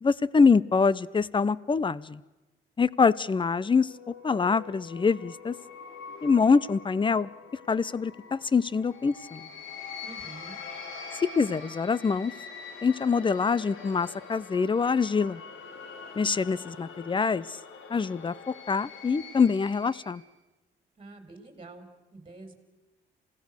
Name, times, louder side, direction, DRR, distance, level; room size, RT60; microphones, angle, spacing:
voice 1, 0.0-2.2 2.8-3.9 4.2-5.5 6.2-7.3 7.7-9.5 11.2-12.3 12.8-15.4 16.2-17.6 17.9-20.2, left 5 dB, 25° left, 21 dB, 0.7 m, -25 dB
sound 1, 3.4-20.2, left 5 dB, 80° left, 2.7 m, -44 dB
voice 2, 10.0-10.6 21.0-22.6, right 2 dB, 25° right, 7 dB, 4.3 m, -47 dB
28.0 x 17.5 x 6.5 m, 1.1 s
cardioid pair, 90°, 20 cm